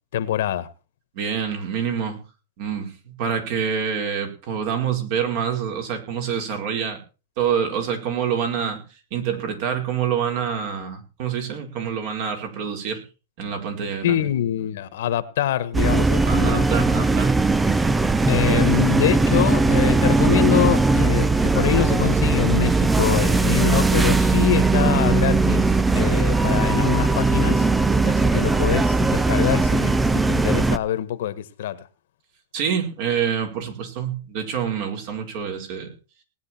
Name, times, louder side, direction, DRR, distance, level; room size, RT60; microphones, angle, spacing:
voice 1, 0.1-0.7 14.0-16.7 18.3-27.6 28.0-31.9, left 11 dB, 70° left, 1.6 m, -25 dB
voice 2, 1.1-2.2 2.6-7.0 7.4-8.8 9.1-13.0 13.4-14.3 16.3-17.3 18.5-18.7 32.5-35.9, right 7 dB, 50° right, 4.7 m, -26 dB
sound 1, 15.7-30.8, right 3 dB, 10° right, 0.6 m, -19 dB
19.0 x 9.5 x 4.5 m
supercardioid pair, 150°, 0 cm